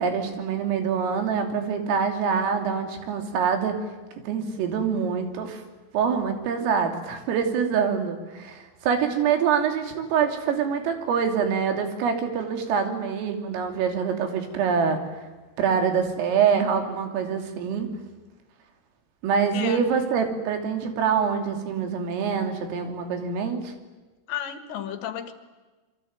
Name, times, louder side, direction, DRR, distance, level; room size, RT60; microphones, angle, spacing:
voice 1, 0.0-3.8 4.2-5.6 5.9-15.0 15.6-17.9 19.2-23.7, right 6 dB, 80° right, 5 dB, 5.5 m, -25 dB
voice 2, 24.3-25.3, left 10 dB, 65° left, 9 dB, 3.7 m, -32 dB
27.0 x 23.0 x 9.5 m, 1.2 s
omnidirectional pair, 5.8 m